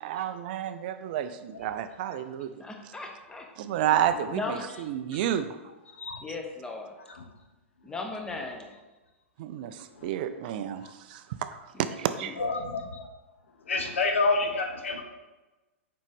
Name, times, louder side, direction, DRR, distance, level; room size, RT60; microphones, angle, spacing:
voice 1, 0.0-2.5 2.8-2.9 3.6-5.6 9.4-12.4, right 10 dB, 45° right, 11 dB, 0.4 m, -31 dB
voice 2, 2.6-3.5 4.3-4.6 6.2-6.9 7.8-8.7 12.2-12.3, left 3 dB, 10° left, 3 dB, 0.9 m, -36 dB
voice 3, 12.4-13.1 13.6-15.0, left 3 dB, 65° left, 4 dB, 0.9 m, -29 dB
7.2 x 5.1 x 3.6 m, 1.1 s
figure-of-eight pair, 100°, 7 cm